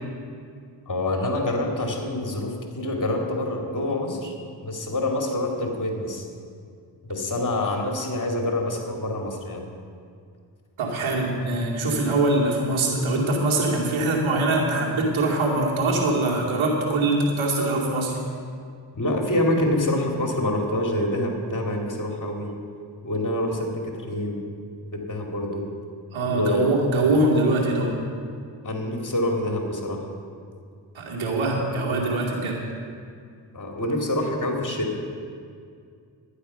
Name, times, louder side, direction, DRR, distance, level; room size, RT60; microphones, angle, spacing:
voice 1, 0.9-4.3 4.6-6.3 7.0-9.6 18.9-22.5 23.0-24.4 24.9-25.6 26.2-26.7 28.6-30.0 33.5-35.1, left 1 dB, 40° left, 1 dB, 2.6 m, -26 dB
voice 2, 10.8-18.2 26.1-28.0 30.9-32.6, right 2 dB, 80° right, -2 dB, 2.6 m, -23 dB
11.5 x 10.0 x 5.7 m, 2.3 s
cardioid pair, 60°, 47 cm